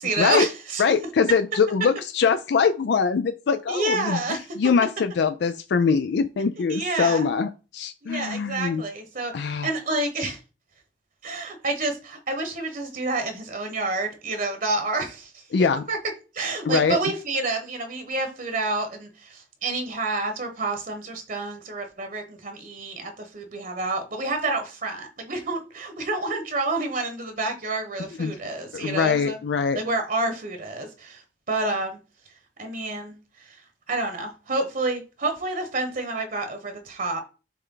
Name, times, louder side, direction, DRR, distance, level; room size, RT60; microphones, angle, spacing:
voice 1, 0.0-0.8 3.7-4.5 6.7-7.3 8.0-10.4 11.2-15.4 15.9-16.0 16.3-29.4 29.7-31.2 31.5-32.0 32.6-33.6 33.9-37.2, right 2 dB, 50° right, 1.1 m, -29 dB
voice 2, 0.8-4.2 4.6-8.8 9.3-9.7 15.5-15.8 16.7-17.0 28.2-28.4 28.7-29.8, left 5 dB, 65° left, 0.4 m, -23 dB
7.4 x 3.4 x 3.8 m
head